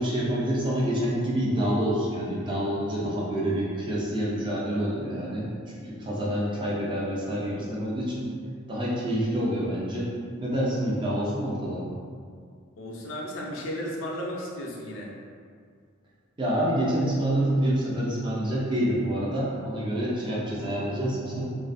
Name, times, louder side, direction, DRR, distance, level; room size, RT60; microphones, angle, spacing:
voice 1, 0.0-5.5 5.8-8.3 8.7-10.1 10.4-11.8 16.4-21.4, right 1 dB, 25° right, -6 dB, 0.4 m, -27 dB
voice 2, 12.8-15.1, equal, 70° left, -3 dB, 0.5 m, -34 dB
2.3 x 2.3 x 2.5 m, 2.1 s
head